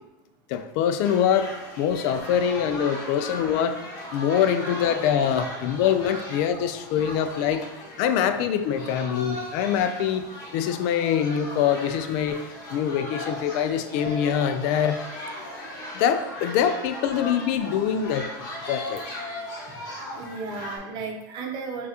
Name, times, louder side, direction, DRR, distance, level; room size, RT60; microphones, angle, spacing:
voice 1, 0.5-1.5 1.8-3.8 4.1-7.7 8.0-10.2 10.5-15.0 15.9-18.3 18.7-19.0, left 8 dB, 60° left, 9 dB, 0.4 m, -24 dB
sound 1, 1.0-20.8, left 1 dB, 40° left, 1.2 m, -38 dB
voice 2, 20.1-21.9, right 4 dB, 45° right, 2 dB, 0.8 m, -35 dB
5.7 x 2.4 x 2.8 m, 0.97 s
supercardioid pair, 135°, 11 cm